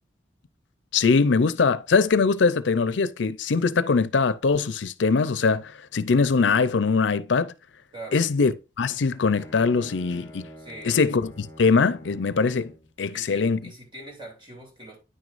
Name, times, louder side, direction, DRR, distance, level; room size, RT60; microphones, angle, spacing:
voice 1, 0.9-7.5 8.1-8.5 8.8-10.5 10.9-12.7 13.0-13.6, left 4 dB, 85° left, 0.5 m, -22 dB
Bowed string instrument, 9.1-13.0, equal, 15° left, 1.0 m, -46 dB
voice 2, 10.6-11.0 13.1-15.0, right 1 dB, 25° right, 2.9 m, -42 dB
9.6 x 6.2 x 2.5 m
head